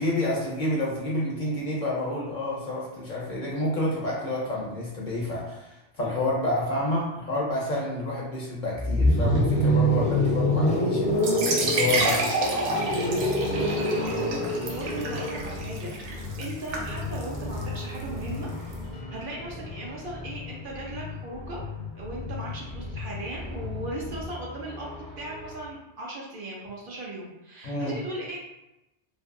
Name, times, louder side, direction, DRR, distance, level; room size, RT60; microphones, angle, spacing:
voice 1, 0.0-11.2 11.6-12.2 27.6-28.0, left 1 dB, 55° left, -4 dB, 0.6 m, -29 dB
sound 1, 8.7-20.7 22.0-25.6, equal, 10° left, 0.4 m, -28 dB
sound 2, 11.1-18.7, right 2 dB, 90° right, 0.9 m, -30 dB
sound 3, 13.6-24.3, left 5 dB, 85° left, 0.9 m, -39 dB
voice 2, 13.6-18.5 19.1-21.6 22.0-28.5, right 1 dB, 60° right, -4 dB, 0.6 m, -38 dB
2.6 x 2.5 x 2.5 m, 0.94 s
omnidirectional pair, 1.2 m